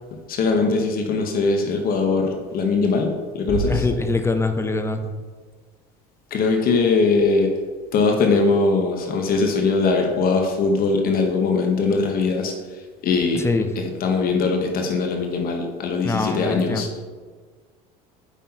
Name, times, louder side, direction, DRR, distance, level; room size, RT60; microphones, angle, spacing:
voice 1, 0.3-3.8 6.3-7.5 7.9-13.4 14.0-16.9, left 4 dB, 50° left, 3 dB, 1.0 m, -21 dB
sound 1, 3.5-4.9, right 2 dB, 25° right, 1.7 m, -30 dB
voice 2, 3.7-5.0 13.3-13.7 16.0-17.0, left 3 dB, 15° left, 8 dB, 0.6 m, -24 dB
8.2 x 5.8 x 2.9 m, 1.5 s
supercardioid pair, 95°, 19 cm